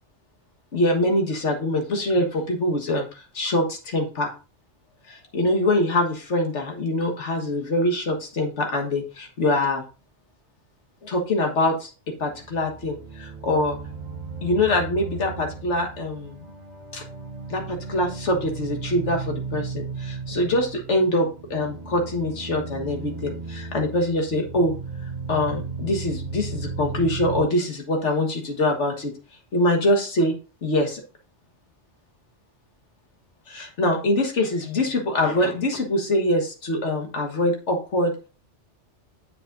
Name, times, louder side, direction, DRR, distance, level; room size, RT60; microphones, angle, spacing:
voice 1, 0.7-4.3 5.1-9.8 11.0-13.8 14.4-16.4 16.9-17.0 17.5-24.7 25.3-29.1 29.5-30.3 30.6-31.0 33.5-38.1, left 1 dB, 80° left, 3 dB, 1.8 m, -24 dB
sound 1, 12.2-27.5, right 4 dB, 40° right, 1.0 m, -35 dB
7.5 x 6.9 x 2.5 m, 0.34 s
omnidirectional pair, 1.2 m